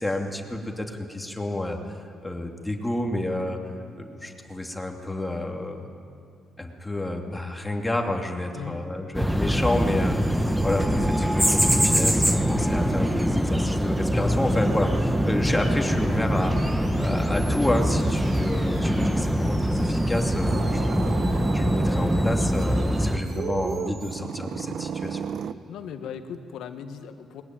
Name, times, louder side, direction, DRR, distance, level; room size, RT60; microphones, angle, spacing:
voice 1, 0.0-1.8 2.2-3.7 4.0-5.8 6.6-25.2, left 1 dB, 10° left, 2 dB, 2.6 m, -30 dB
sound 1, 9.1-23.2, equal, 5° right, 1.2 m, -23 dB
sound 2, 16.2-24.2, right 1 dB, 40° right, 6.3 m, -47 dB
sound 3, 20.5-25.5, right 7 dB, 60° right, 0.8 m, -34 dB
voice 2, 25.7-27.4, left 8 dB, 80° left, 8 dB, 1.6 m, -37 dB
21.5 x 21.0 x 9.3 m, 2.5 s
cardioid pair, 90°, 0 cm